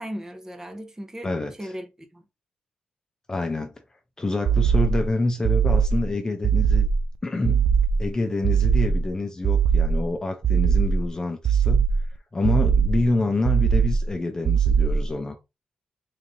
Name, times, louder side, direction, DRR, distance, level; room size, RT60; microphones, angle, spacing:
voice 1, 0.0-2.2, equal, 15° right, 0.8 m, -37 dB
voice 2, 3.3-3.7 4.2-6.9 7.2-7.7 8.0-11.9 12.3-15.4, left 2 dB, 20° left, 0.5 m, -27 dB
sound 1, 4.5-5.1 5.4-6.1 6.4-7.1 7.4-8.1 8.4-9.1 9.4-10.1 10.4-11.1 11.4-12.1 12.4-13.1 13.4-14.1 14.4-15.1, right 6 dB, 45° right, 0.3 m, -20 dB
3.8 x 3.2 x 2.6 m
cardioid pair, 100°, 3 cm